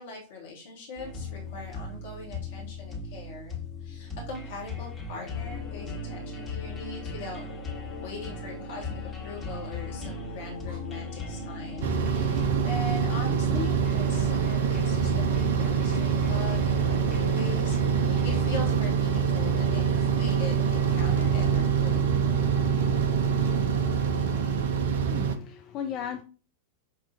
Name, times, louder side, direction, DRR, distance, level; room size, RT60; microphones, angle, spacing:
voice 1, 0.0-7.5 8.0-17.8 18.0-22.1 23.4-23.5, left 3 dB, 55° left, -2 dB, 1.0 m, -41 dB
sound 1, 1.0-18.4, left 4 dB, 15° left, 1.0 m, -38 dB
sound 2, 5.1-24.7, left 2 dB, 75° left, 0.7 m, -43 dB
sound 3, 11.8-25.4, right 7 dB, 60° right, 0.4 m, -25 dB
voice 2, 25.0-26.2, left 8 dB, 35° left, 6 dB, 0.3 m, -35 dB
5.6 x 2.3 x 2.5 m, 0.37 s
figure-of-eight pair, 90°, 0 cm